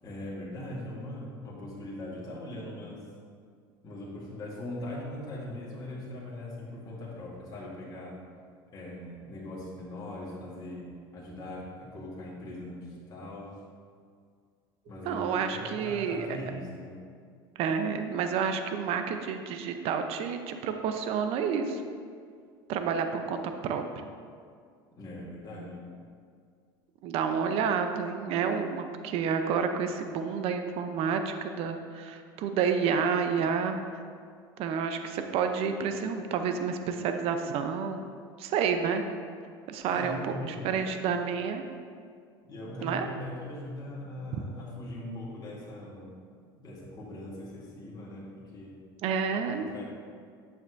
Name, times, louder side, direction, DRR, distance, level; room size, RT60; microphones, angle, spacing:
voice 1, 0.0-3.1 3.8-8.2 8.7-13.5 14.9-17.0 25.0-25.8 39.9-40.8 42.4-46.1 46.6-48.8 49.5-49.8, left 1 dB, 35° left, -6 dB, 1.8 m, -40 dB
voice 2, 15.1-16.3 17.6-21.8 22.7-23.8 27.0-33.8 34.6-38.1 38.4-39.0 39.7-40.2 40.5-41.7 42.8-43.1 44.3-44.4 49.0-49.8, right 6 dB, 55° right, 7 dB, 0.6 m, -29 dB
8.4 x 6.6 x 2.6 m, 2.2 s
supercardioid pair, 95°, 12 cm